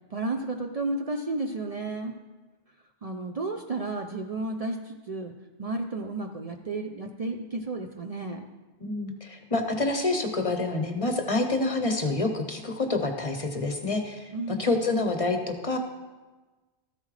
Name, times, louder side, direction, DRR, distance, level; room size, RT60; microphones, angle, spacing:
voice 1, 0.1-2.1 3.0-5.3 5.6-8.4 14.3-15.0, right 2 dB, 45° right, 3 dB, 0.5 m, -32 dB
voice 2, 8.8-15.8, left 2 dB, 35° left, 5 dB, 0.8 m, -27 dB
13.5 x 7.4 x 3.2 m, 1.2 s
omnidirectional pair, 1.0 m